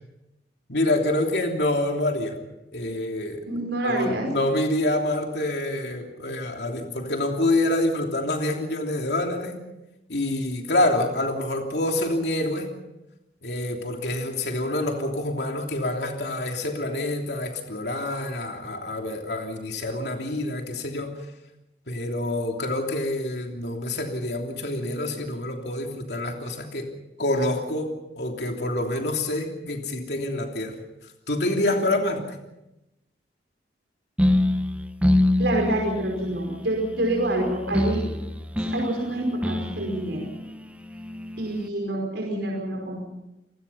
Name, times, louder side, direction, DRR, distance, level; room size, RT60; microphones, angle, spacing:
voice 1, 0.7-2.4 2.7-3.4 3.8-9.6 10.1-12.7 13.4-21.1 21.9-26.9 27.2-30.8 31.3-32.2, left 1 dB, 70° left, 2 dB, 3.1 m, -27 dB
voice 2, 3.5-4.3 35.4-38.0 38.6-40.2 41.4-43.0, right 1 dB, 80° right, 0 dB, 5.3 m, -27 dB
sound 1, 34.2-41.7, left 1 dB, 10° right, 1.2 m, -26 dB
29.5 x 19.5 x 5.7 m, 0.94 s
head